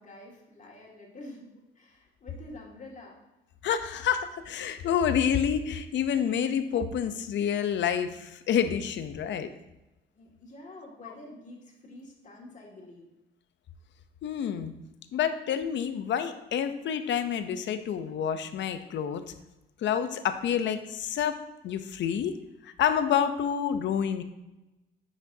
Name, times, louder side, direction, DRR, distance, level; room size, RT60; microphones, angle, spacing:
voice 1, 0.0-1.5 1.8-3.2 10.2-13.1, left 2 dB, 40° left, -2 dB, 2.0 m, -47 dB
voice 2, 3.6-9.5 14.2-14.7 15.1-19.2 19.8-21.4 21.6-22.4 22.6-24.2, left 8 dB, 65° left, 10 dB, 0.6 m, -28 dB
9.5 x 5.1 x 2.7 m, 0.98 s
cardioid pair, 90°, 20 cm